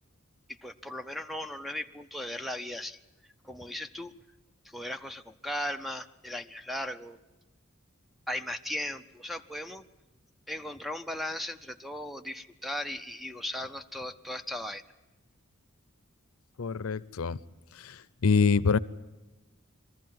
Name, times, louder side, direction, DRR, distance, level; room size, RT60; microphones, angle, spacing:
voice 1, 0.5-3.0 3.4-4.1 4.6-7.2 8.3-9.8 10.5-14.8, left 1 dB, ahead, 9 dB, 0.6 m, -37 dB
voice 2, 16.6-17.4 17.7-18.8, left 5 dB, 80° left, 16 dB, 0.6 m, -26 dB
22.0 x 14.5 x 9.4 m, 1.1 s
head